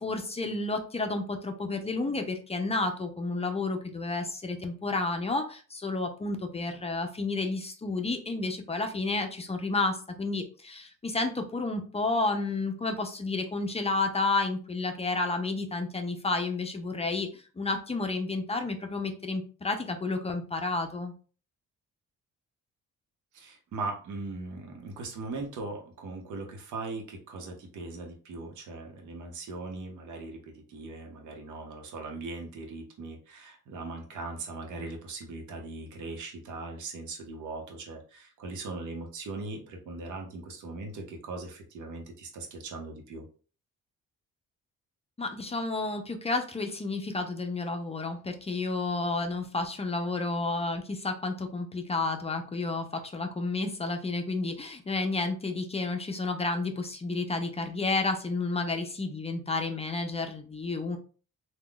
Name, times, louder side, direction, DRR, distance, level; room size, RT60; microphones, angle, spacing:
voice 1, 0.0-21.1 45.2-61.0, left 3 dB, 20° left, 5 dB, 0.5 m, -31 dB
voice 2, 23.3-43.3, right 3 dB, 75° right, 2 dB, 0.9 m, -39 dB
3.6 x 2.3 x 2.3 m, 0.39 s
cardioid pair, 90°, 30 cm